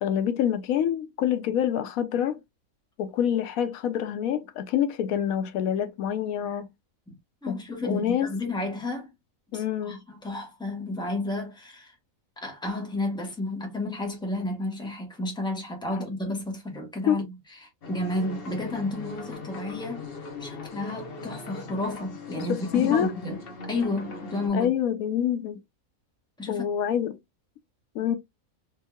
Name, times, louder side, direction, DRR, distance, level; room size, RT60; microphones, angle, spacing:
voice 1, 0.0-2.4 3.0-6.7 7.5-7.6 7.8-8.3 9.5-10.0 17.1-17.2 22.5-23.1 24.5-25.6 26.5-27.2 27.9-28.2, left 9 dB, 85° left, 1.0 m, -26 dB
voice 2, 7.4-9.1 9.5-11.9 12.4-17.2 17.6-20.1 20.4-23.4 23.7-24.7 26.4-26.6, left 2 dB, 5° left, 1.0 m, -31 dB
sound 1, 17.8-24.5, left 3 dB, 50° left, 1.0 m, -39 dB
4.4 x 2.7 x 2.2 m
omnidirectional pair, 1.4 m